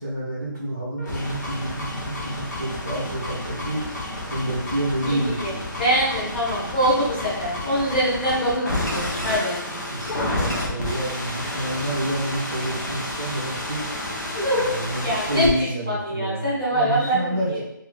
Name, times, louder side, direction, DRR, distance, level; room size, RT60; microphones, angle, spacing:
voice 1, 0.0-3.8 4.3-5.6 9.9-13.8 14.5-17.6, right 1 dB, 10° right, -14 dB, 0.3 m, -28 dB
sound 1, 1.0-15.5, left 1 dB, 50° left, 1.0 m, -30 dB
voice 2, 5.1-5.5 5.8-9.5 14.3-14.8 15.0-17.6, equal, 15° left, -10 dB, 0.9 m, -24 dB
2.7 x 2.6 x 3.5 m, 0.82 s
hypercardioid pair, 175°, 11 cm